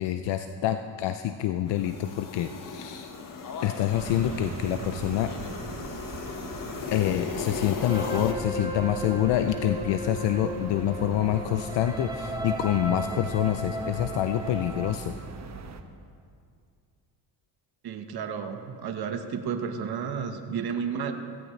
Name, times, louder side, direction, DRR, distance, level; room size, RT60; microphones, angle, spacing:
voice 1, 0.0-3.1 3.6-5.3 6.9-15.1, left 12 dB, 70° left, 8 dB, 0.7 m, -27 dB
sound 1, 1.7-8.3, left 5 dB, 45° left, 1.5 m, -37 dB
sound 2, 3.9-15.8, right 5 dB, 35° right, 1.2 m, -41 dB
sound 3, 7.9-15.0, equal, 10° right, 1.5 m, -35 dB
voice 2, 17.8-21.1, right 6 dB, 55° right, 6 dB, 1.4 m, -32 dB
16.5 x 15.5 x 3.3 m, 2.2 s
cardioid pair, 85°, 45 cm